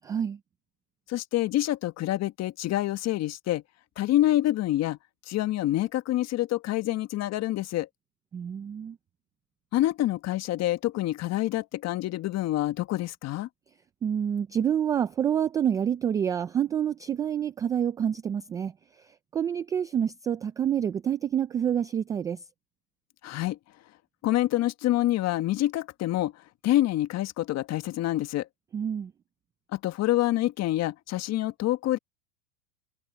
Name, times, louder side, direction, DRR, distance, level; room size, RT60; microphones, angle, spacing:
voice 1, 0.1-0.4 8.3-9.0 14.0-18.7 19.0-22.4 28.7-29.1, right 9 dB, 10° right, 0.3 m, -28 dB
voice 2, 1.1-3.6 4.0-5.0 5.3-7.9 9.7-13.5 23.2-23.6 24.2-26.3 26.6-28.5 29.7-32.0, left 15 dB, 30° left, 1.5 m, -27 dB
hypercardioid pair, 115°, 49 cm